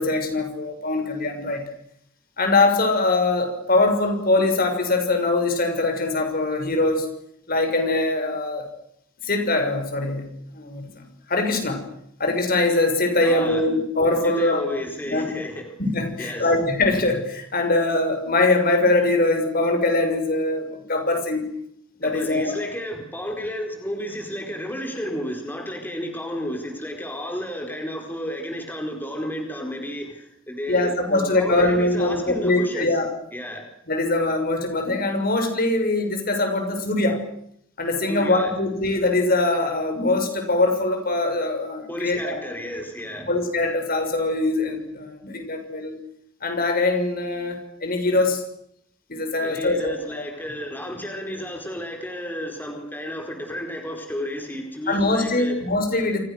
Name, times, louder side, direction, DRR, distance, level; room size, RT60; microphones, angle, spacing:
voice 1, 0.0-1.6 2.4-7.1 7.5-8.7 9.2-11.0 11.3-11.8 12.2-14.6 15.1-15.3 15.8-21.4 22.0-22.6 30.7-33.1 33.9-37.2 37.8-42.4 43.3-45.9 46.4-48.4 49.1-49.9 54.9-56.2, left 2 dB, 50° left, 5 dB, 6.3 m, -22 dB
voice 2, 13.2-13.6 14.2-15.6 16.2-16.5 22.0-32.9 33.3-33.6 38.1-38.5 41.9-43.3 49.4-55.6, equal, 10° left, 2 dB, 4.6 m, -32 dB
29.0 x 27.0 x 6.6 m, 0.74 s
head